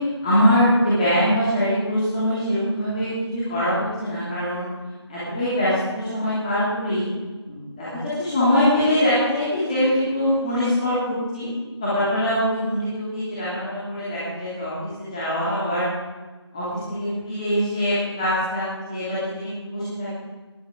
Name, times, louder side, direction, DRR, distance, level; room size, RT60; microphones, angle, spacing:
voice 1, 0.2-4.6 5.1-7.1 7.5-11.5 11.8-15.8 16.5-20.1, equal, 15° left, -11 dB, 2.9 m, -23 dB
20.5 x 11.5 x 3.8 m, 1.2 s
figure-of-eight pair, 165°, 15 cm